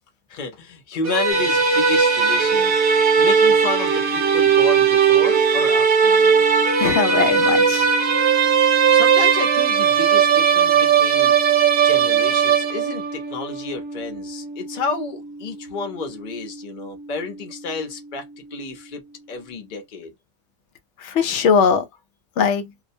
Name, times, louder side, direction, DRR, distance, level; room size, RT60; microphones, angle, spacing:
voice 1, 0.3-2.8 3.2-6.4 8.9-11.4 11.8-18.3 18.5-19.0 19.3-20.1, left 4 dB, 50° left, 0.8 m, -31 dB
sound 1, 1.0-13.1, right 6 dB, 60° right, 0.8 m, -17 dB
sound 2, 1.3-19.9, right 2 dB, 25° right, 0.5 m, -33 dB
voice 2, 6.8-7.9 21.0-21.8 22.4-22.7, left 6 dB, 90° left, 0.9 m, -20 dB
2.4 x 2.0 x 2.6 m
omnidirectional pair, 1.1 m